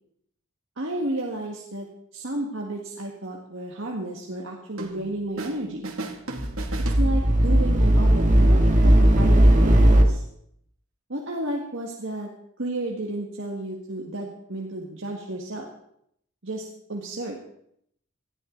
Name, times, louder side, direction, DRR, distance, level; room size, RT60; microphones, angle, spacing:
voice 1, 0.8-1.9 2.1-5.9 7.0-10.2 11.1-12.3 12.6-15.7 16.4-17.4, right 1 dB, 65° right, -1 dB, 1.9 m, -32 dB
sound 1, 4.8-5.6 5.8-7.6, right 2 dB, 90° right, 2.4 m, -36 dB
sound 2, 6.4-10.0, right 1 dB, 40° right, 1.8 m, -17 dB
19.5 x 13.5 x 4.0 m, 0.71 s
head